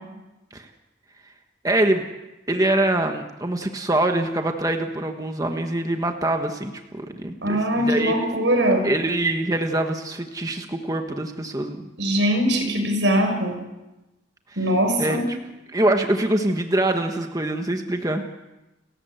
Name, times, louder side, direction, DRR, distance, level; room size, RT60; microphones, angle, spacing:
voice 1, 1.6-2.0 2.5-8.3 8.8-11.9 14.5-14.7 15.0-15.2 15.7-18.2, right 1 dB, 20° right, 4 dB, 1.3 m, -24 dB
voice 2, 7.4-8.9 12.0-13.6 14.6-15.2, equal, 80° right, 4 dB, 6.4 m, -21 dB
30.0 x 14.5 x 8.1 m, 1.0 s
head